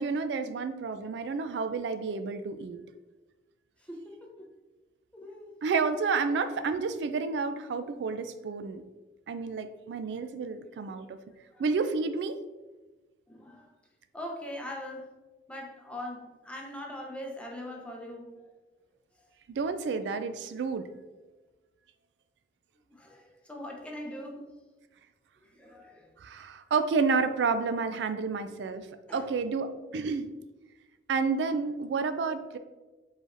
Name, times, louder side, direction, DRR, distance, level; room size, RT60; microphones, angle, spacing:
voice 1, 0.0-2.8 5.6-8.8 9.3-11.2 11.6-12.4 19.5-20.9 26.2-28.9 29.1-30.3 31.1-32.6, right 4 dB, 80° right, 10 dB, 0.3 m, -30 dB
voice 2, 3.9-4.5 5.1-5.5 10.9-11.1 11.5-11.6 13.3-13.7 14.1-15.1 15.5-18.3 22.9-24.5 25.4-26.1 29.1-29.3, left 1 dB, 5° left, -1 dB, 0.7 m, -41 dB
4.9 x 4.0 x 2.6 m, 1.2 s
head